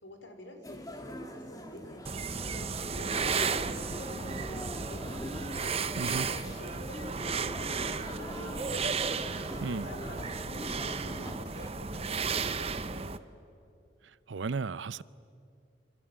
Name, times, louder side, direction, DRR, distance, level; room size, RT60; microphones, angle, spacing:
voice 1, 0.0-2.1 2.4-5.4 6.0-9.0 9.6-13.2, left 1 dB, 85° left, 4.4 m, -49 dB
sound 1, 0.6-11.7, equal, 20° left, 2.3 m, -43 dB
sound 2, 2.0-13.2, right 5 dB, 35° right, 0.8 m, -34 dB
voice 2, 14.3-15.0, right 4 dB, 80° right, 0.6 m, -34 dB
26.5 x 25.5 x 8.8 m
head